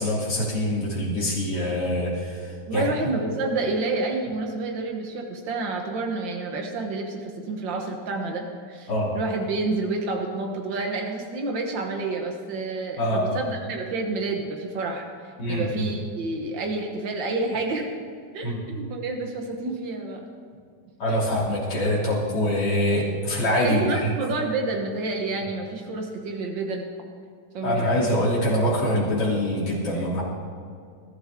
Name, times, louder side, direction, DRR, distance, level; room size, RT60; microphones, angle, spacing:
voice 1, 0.0-2.9 8.9-9.1 13.0-13.4 15.4-15.8 18.4-18.6 21.0-24.1 27.6-30.2, left 1 dB, 65° left, -7 dB, 3.9 m, -24 dB
voice 2, 2.7-18.0 18.3-20.3 23.6-26.9 27.5-28.0, right 3 dB, 85° right, 2 dB, 2.0 m, -29 dB
20.5 x 12.5 x 3.7 m, 2.3 s
omnidirectional pair, 1.9 m